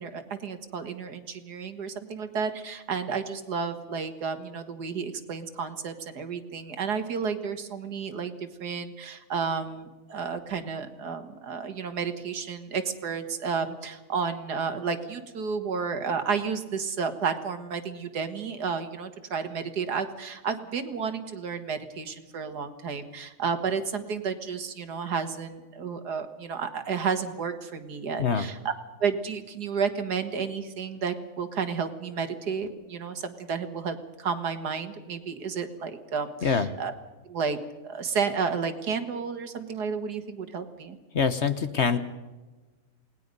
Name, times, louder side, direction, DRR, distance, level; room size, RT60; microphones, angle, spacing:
voice 1, 0.0-28.6 29.0-36.9 37.3-37.6 37.8-41.0, right 5 dB, 80° right, 8 dB, 2.1 m, -31 dB
voice 2, 41.1-42.0, left 6 dB, 50° left, 11 dB, 1.2 m, -24 dB
28.5 x 19.0 x 5.3 m, 1.2 s
omnidirectional pair, 1.7 m